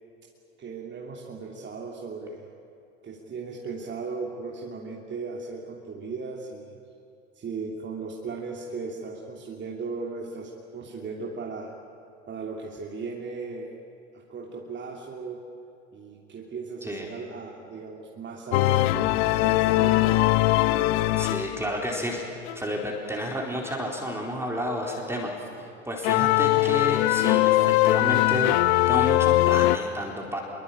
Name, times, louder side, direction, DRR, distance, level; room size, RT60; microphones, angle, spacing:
voice 1, 0.6-2.5 3.0-6.7 7.3-11.7 12.3-13.8 14.1-15.4 15.9-20.2, right 4 dB, 30° right, -1 dB, 3.0 m, -37 dB
sound 1, 18.5-21.9 22.5-22.6 23.7-23.8 26.0-29.8, left 17 dB, 55° left, 1.0 m, -21 dB
voice 2, 21.1-22.2 22.5-30.4, equal, 5° right, -1 dB, 4.2 m, -31 dB
26.0 x 23.0 x 8.9 m, 2.7 s
hypercardioid pair, 85°, 38 cm